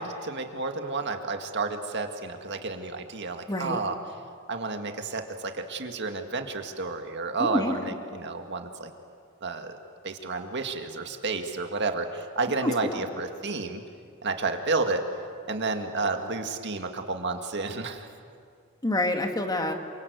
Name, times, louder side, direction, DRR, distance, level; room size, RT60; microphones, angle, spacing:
voice 1, 0.0-4.0 4.5-8.9 9.4-9.8 10.0-13.8 14.2-15.1 15.5-18.1, right 3 dB, 55° right, 5 dB, 2.0 m, -31 dB
voice 2, 3.5-3.8 7.4-7.8 12.6-13.0 18.8-19.7, left 1 dB, 20° left, 5 dB, 1.9 m, -27 dB
27.5 x 25.0 x 8.1 m, 2.2 s
head